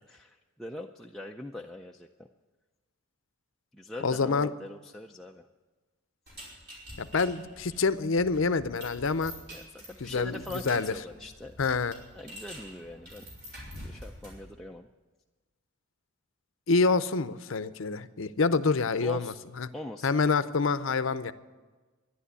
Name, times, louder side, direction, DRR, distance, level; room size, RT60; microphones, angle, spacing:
voice 1, 0.1-2.3 3.7-5.5 9.5-11.6 12.1-13.2 13.8-14.9 19.0-19.4 19.7-20.1, left 1 dB, ahead, 0 dB, 0.4 m, -42 dB
voice 2, 4.0-4.5 7.0-9.3 10.0-10.9 11.6-12.0 16.7-19.7 20.0-21.3, left 4 dB, 65° left, 13 dB, 0.6 m, -27 dB
sound 1, 6.3-14.5, equal, 50° right, 5.1 m, -47 dB
12.5 x 11.0 x 8.3 m, 1.3 s
head